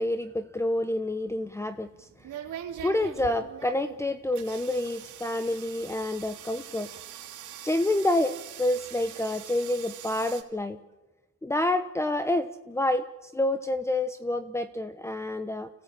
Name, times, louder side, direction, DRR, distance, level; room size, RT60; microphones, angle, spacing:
voice 1, 0.0-2.1 2.8-6.9 7.6-10.8 11.4-15.7, left 1 dB, 10° left, 10 dB, 0.9 m, -28 dB
sound 1, 1.4-10.4, right 10 dB, 80° right, 2.5 m, -43 dB
26.5 x 17.0 x 8.7 m, 1.2 s
cardioid pair, 90°, 30 cm